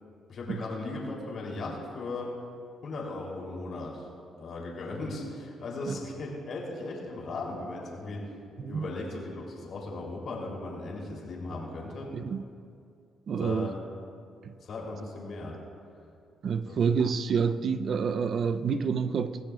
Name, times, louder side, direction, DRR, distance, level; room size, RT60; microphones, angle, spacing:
voice 1, 0.3-2.3 2.8-4.1 4.4-8.2 8.7-12.1 13.4-13.8 14.6-15.6 16.6-16.8, left 2 dB, 60° left, 3.5 m, -37 dB
voice 2, 12.1-12.4 13.3-13.7 14.4-14.5 16.4-19.4, right 6 dB, 55° right, 0.6 m, -28 dB
23.0 x 15.0 x 2.5 m
cardioid pair, 90°, 0 cm